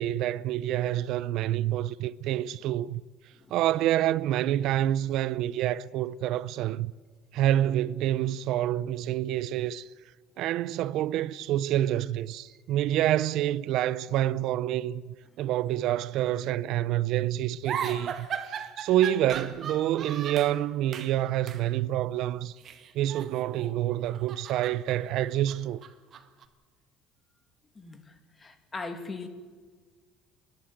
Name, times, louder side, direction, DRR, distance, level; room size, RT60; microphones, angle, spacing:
voice 1, 0.0-3.0 3.5-6.9 7.3-9.9 10.4-22.5 22.9-25.8, right 13 dB, 70° right, 0.5 m, -27 dB
sound 1, 17.7-20.6 20.9-21.2 21.5-21.7 22.6-23.7 24.1-26.5, right 8 dB, 45° right, 1.7 m, -37 dB
voice 2, 27.7-29.3, left 3 dB, 25° left, 2.5 m, -40 dB
29.5 x 12.0 x 9.1 m
supercardioid pair, 100°, 0 cm